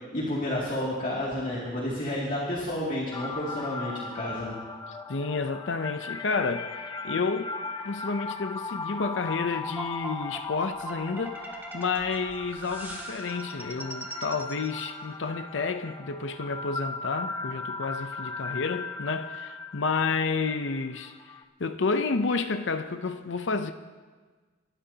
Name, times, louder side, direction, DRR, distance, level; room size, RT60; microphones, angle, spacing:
voice 1, 0.1-4.5, left 1 dB, 45° left, 2.4 m, -30 dB
sound 1, 3.1-21.4, left 4 dB, 20° left, 0.6 m, -38 dB
voice 2, 5.1-6.8 7.0-7.5 7.8-21.1 21.6-23.7, left 4 dB, 70° left, 0.6 m, -30 dB
sound 2, 9.8-15.9, right 2 dB, 10° right, 1.6 m, -41 dB
28.0 x 12.5 x 2.8 m
head